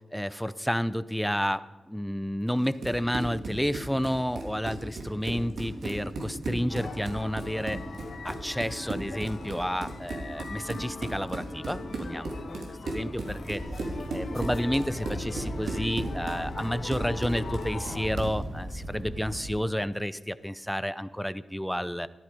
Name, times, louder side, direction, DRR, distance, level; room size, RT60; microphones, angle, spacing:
voice 1, 0.1-7.8 8.2-13.6 14.1-22.1, equal, ahead, 15 dB, 0.5 m, -31 dB
Run, 2.6-18.4, right 2 dB, 90° right, 3.1 m, -36 dB
sound 1, 6.7-18.1, left 4 dB, 65° left, 1.6 m, -42 dB
sound 2, 13.6-19.6, right 1 dB, 30° right, 3.8 m, -39 dB
14.0 x 13.5 x 5.2 m, 1.2 s
wide cardioid pair, 150°, 0 cm